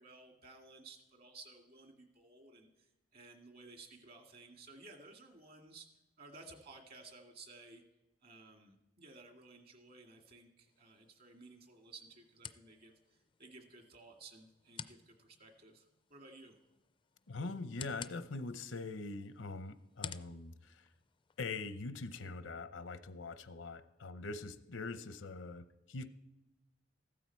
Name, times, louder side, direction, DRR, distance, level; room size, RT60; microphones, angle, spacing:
voice 1, 0.0-5.9 6.2-7.8 8.2-16.6, right 3 dB, 55° right, 4 dB, 2.0 m, -56 dB
sound 1, 10.7-21.6, left 7 dB, 25° left, 0.4 m, -54 dB
voice 2, 17.3-20.9 21.4-26.1, left 3 dB, 85° left, 12 dB, 0.8 m, -43 dB
15.0 x 12.5 x 4.5 m, 0.98 s
head